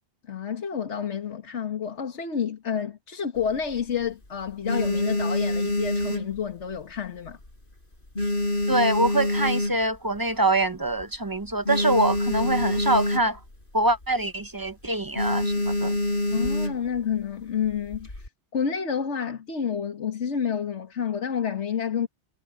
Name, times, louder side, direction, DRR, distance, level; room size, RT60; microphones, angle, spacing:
voice 1, 0.3-7.4 16.3-22.1, left 7 dB, 75° left, 1.8 m, -29 dB
sound 1, 3.4-4.1 4.5-7.0 7.3-7.6 7.9-10.2 10.6-10.7 10.9-11.0 11.4-13.6 13.9-14.1 14.4-14.7 15.2-17.0 17.7-18.3, left 1 dB, 50° left, 5.0 m, -26 dB
voice 2, 8.7-13.4 13.7-16.0, right 1 dB, 25° right, 0.6 m, -24 dB
omnidirectional pair, 1.2 m